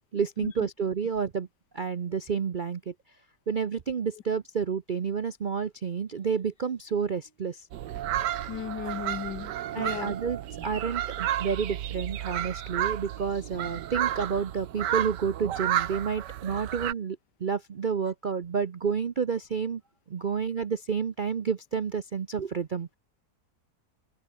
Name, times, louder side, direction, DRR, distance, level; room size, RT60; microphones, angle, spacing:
voice 1, 0.1-1.5 1.7-2.9 3.5-7.6 9.7-19.8 20.1-22.9, right 6 dB, 55° right, 0.5 m, -30 dB
sound 1, 7.7-16.9, right 12 dB, 85° right, 1.5 m, -32 dB
voice 2, 8.5-10.1 20.2-20.3, left 10 dB, 80° left, 1.6 m, -36 dB
omnidirectional pair, 1.8 m